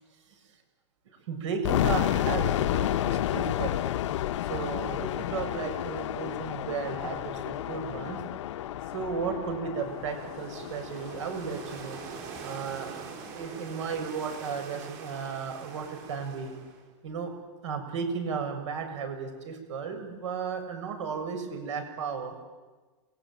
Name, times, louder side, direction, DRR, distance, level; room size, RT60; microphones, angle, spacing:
voice 1, 1.3-3.8 4.5-8.2 8.9-12.0 12.4-16.5 17.0-17.3 17.6-22.5, right 5 dB, 65° right, 7 dB, 7.0 m, -34 dB
sound 1, 1.6-12.5, left 12 dB, 60° left, 0.9 m, -31 dB
sound 2, 9.8-16.9, right 6 dB, 40° right, 5.8 m, -44 dB
29.0 x 21.5 x 9.2 m, 1.3 s
supercardioid pair, 175°, 17 cm